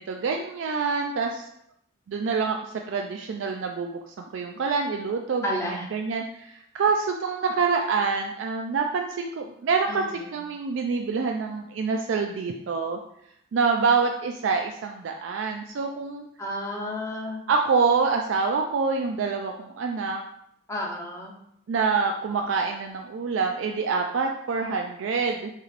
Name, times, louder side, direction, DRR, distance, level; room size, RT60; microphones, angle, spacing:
voice 1, 0.0-1.5 2.1-4.0 4.3-13.0 13.5-16.3 16.8-16.9 17.5-20.2 21.7-25.5, right 5 dB, 75° right, 3 dB, 0.4 m, -26 dB
voice 2, 5.4-5.9 9.9-10.0 16.4-17.4 20.7-21.4, equal, 15° left, -2 dB, 0.9 m, -31 dB
6.4 x 3.3 x 2.5 m, 0.74 s
head